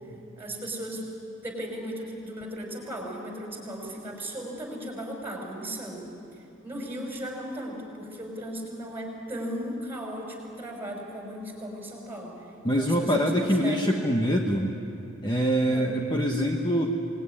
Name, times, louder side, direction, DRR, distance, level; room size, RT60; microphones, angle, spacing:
voice 1, 0.4-1.0 1.4-6.1 6.3-14.0 15.7-15.9, right 1 dB, 10° right, 0 dB, 5.7 m, -36 dB
voice 2, 12.6-14.7 15.2-16.9, equal, 20° left, 1 dB, 1.3 m, -24 dB
27.0 x 20.0 x 10.0 m, 2.6 s
head